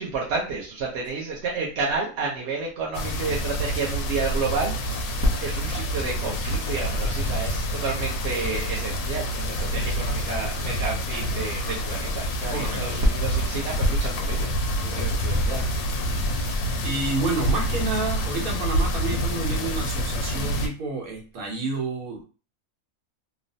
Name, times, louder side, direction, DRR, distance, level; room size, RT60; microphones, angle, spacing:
voice 1, 0.0-15.6 16.6-16.7, right 3 dB, 60° right, -3 dB, 0.8 m, -30 dB
sound 1, 2.9-20.7, equal, 85° left, 1.0 m, -27 dB
voice 2, 12.5-13.0 14.8-15.1 16.8-22.3, right 3 dB, 85° right, 0 dB, 1.3 m, -30 dB
3.0 x 2.0 x 2.6 m, 0.35 s
omnidirectional pair, 1.5 m